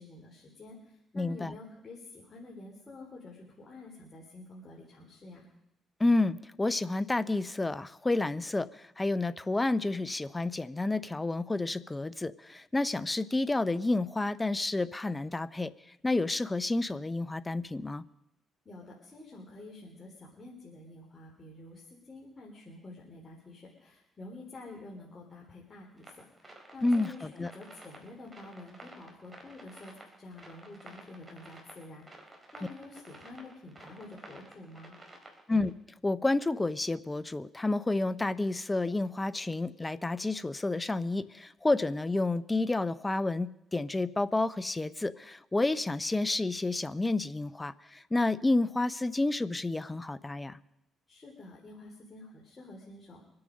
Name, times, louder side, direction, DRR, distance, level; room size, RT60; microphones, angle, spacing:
voice 1, 0.0-5.5 18.7-35.0 51.1-53.2, left 2 dB, 35° left, -3 dB, 3.8 m, -49 dB
voice 2, 1.2-1.6 6.0-15.7 16.0-18.0 26.8-27.5 35.5-35.7 36.0-50.6, left 2 dB, 20° left, 17 dB, 0.7 m, -30 dB
sound 1, 26.0-35.7, right 2 dB, 25° right, 4.2 m, -52 dB
25.0 x 8.7 x 5.3 m, 0.84 s
supercardioid pair, 65°, 0 cm